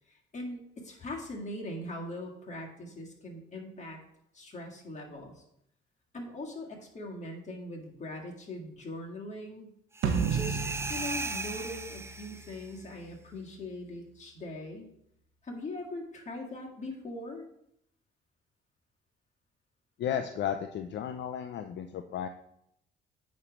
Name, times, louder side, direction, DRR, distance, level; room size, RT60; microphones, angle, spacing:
voice 1, 0.3-4.0 4.3-5.4 6.1-9.7 10.2-10.6 10.9-14.9 15.4-17.4, left 1 dB, 35° left, -1 dB, 1.8 m, -41 dB
sound 1, 9.9-12.7, right 3 dB, 15° right, 0.5 m, -37 dB
sound 2, 10.0-12.5, right 6 dB, 75° right, 0.8 m, -32 dB
voice 2, 20.0-22.3, left 9 dB, 65° left, 7 dB, 0.5 m, -34 dB
8.8 x 3.2 x 5.1 m, 0.76 s
cardioid pair, 90°, 20 cm